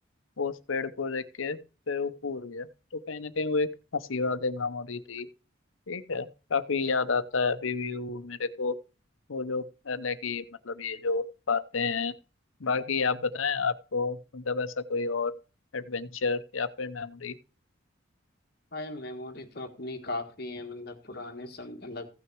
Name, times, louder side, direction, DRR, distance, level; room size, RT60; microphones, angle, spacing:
voice 1, 0.4-1.6 1.9-5.3 5.9-8.8 9.3-12.1 12.6-15.3 15.7-17.4, left 4 dB, 80° left, 0.8 m, -30 dB
voice 2, 18.7-22.1, left 2 dB, 50° left, 1.6 m, -38 dB
15.5 x 6.2 x 4.6 m
head